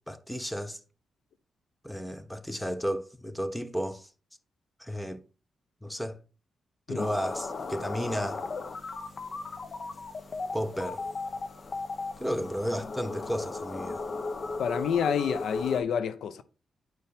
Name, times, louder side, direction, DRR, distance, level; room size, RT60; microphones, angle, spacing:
voice 1, 0.1-0.8 1.8-4.1 4.8-5.2 5.8-6.2 6.9-8.4 10.5-11.0 12.2-14.0, equal, 5° left, 0.8 m, -33 dB
sound 1, 7.0-15.8, left 3 dB, 50° left, 0.8 m, -36 dB
voice 2, 14.6-16.4, left 7 dB, 85° left, 0.6 m, -28 dB
9.2 x 4.5 x 3.5 m
cardioid pair, 95°, 0 cm